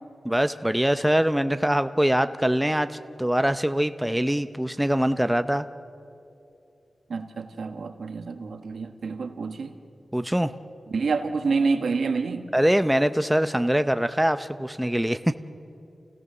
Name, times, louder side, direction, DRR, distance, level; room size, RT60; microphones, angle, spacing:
voice 1, 0.2-5.7 10.1-10.5 12.5-15.4, equal, 5° right, 10 dB, 0.6 m, -23 dB
voice 2, 7.1-9.8 10.9-12.5, right 4 dB, 80° right, 7 dB, 1.2 m, -28 dB
28.5 x 16.5 x 6.7 m, 2.8 s
wide cardioid pair, 75°, 0 cm